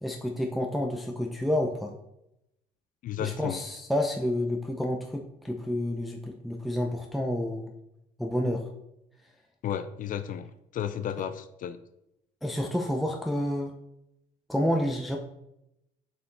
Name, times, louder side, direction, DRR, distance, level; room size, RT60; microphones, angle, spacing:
voice 1, 0.0-1.9 3.2-7.7 8.2-8.7 12.4-13.7 14.5-15.2, left 1 dB, ahead, 1 dB, 0.6 m, -29 dB
voice 2, 3.0-3.6 9.6-10.5 10.7-11.8, left 9 dB, 55° left, 12 dB, 0.4 m, -33 dB
6.8 x 4.4 x 3.8 m, 0.85 s
cardioid pair, 110°, 17 cm